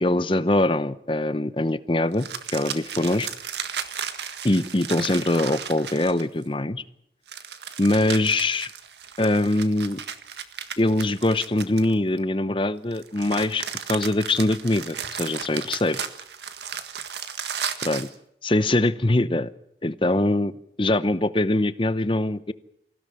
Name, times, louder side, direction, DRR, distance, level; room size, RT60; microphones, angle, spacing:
voice 1, 0.0-3.3 4.4-6.8 7.8-8.7 9.2-10.0 10.8-16.1 17.8-18.1 18.4-19.5 19.8-20.5 20.8-22.5, left 1 dB, 30° left, 15 dB, 0.8 m, -23 dB
sound 1, 2.1-6.4 7.3-12.2 12.9-18.1, right 8 dB, 75° right, 1.7 m, -34 dB
25.0 x 16.0 x 7.8 m, 0.76 s
head